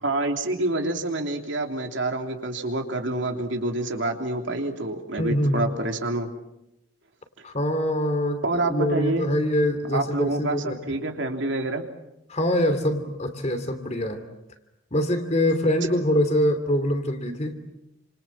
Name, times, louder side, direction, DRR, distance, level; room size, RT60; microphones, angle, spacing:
voice 1, 0.0-6.3 8.4-9.3 9.9-11.8, right 2 dB, 60° right, 4 dB, 3.2 m, -27 dB
voice 2, 5.2-5.8 7.4-10.8 12.3-14.2 14.9-17.6, equal, 35° left, 8 dB, 3.0 m, -24 dB
29.5 x 27.0 x 7.5 m, 0.87 s
head